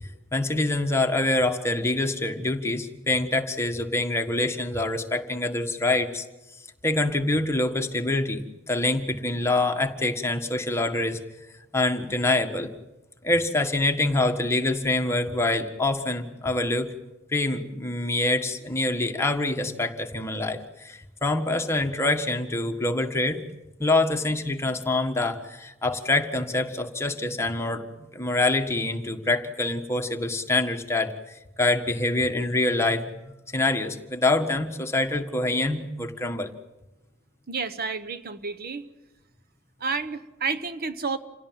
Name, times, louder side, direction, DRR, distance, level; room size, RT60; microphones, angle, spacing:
voice 1, 0.3-6.2 6.8-11.2 11.7-12.7 13.2-16.9 17.3-23.4 23.8-36.5, left 2 dB, 15° left, 4 dB, 1.6 m, -25 dB
voice 2, 37.5-38.9 39.8-41.2, right 4 dB, 45° right, 11 dB, 1.0 m, -30 dB
27.5 x 17.5 x 9.2 m, 1.0 s
head